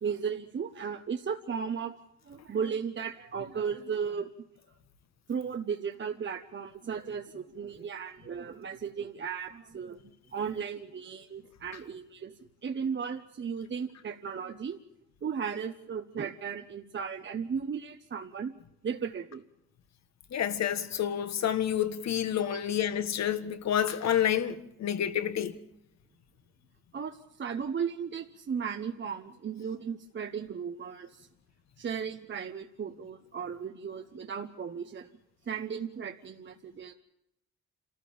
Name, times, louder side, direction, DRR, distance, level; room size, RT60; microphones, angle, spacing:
voice 1, 0.0-2.0 2.2-4.3 5.3-12.3 12.6-14.8 15.2-18.5 18.8-19.4 22.5-22.6 26.9-31.3 31.8-35.1 35.5-36.9, right 6 dB, 40° right, 1.0 m, -35 dB
voice 2, 20.3-25.5, left 10 dB, 60° left, 1.6 m, -29 dB
27.0 x 14.0 x 7.2 m
cardioid pair, 90°, 30 cm